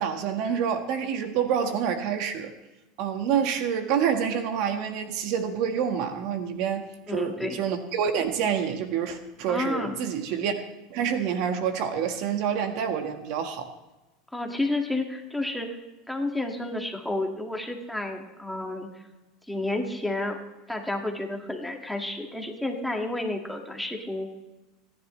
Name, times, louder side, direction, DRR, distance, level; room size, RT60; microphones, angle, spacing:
voice 1, 0.0-2.5 3.0-10.5 10.9-13.7, right 8 dB, 60° right, 6 dB, 1.5 m, -27 dB
voice 2, 7.1-7.6 9.5-10.0 14.3-15.7 16.1-18.9 19.5-20.4 20.7-24.3, left 2 dB, 5° left, 2 dB, 1.9 m, -30 dB
27.5 x 11.0 x 3.2 m, 1.0 s
supercardioid pair, 120°, 0 cm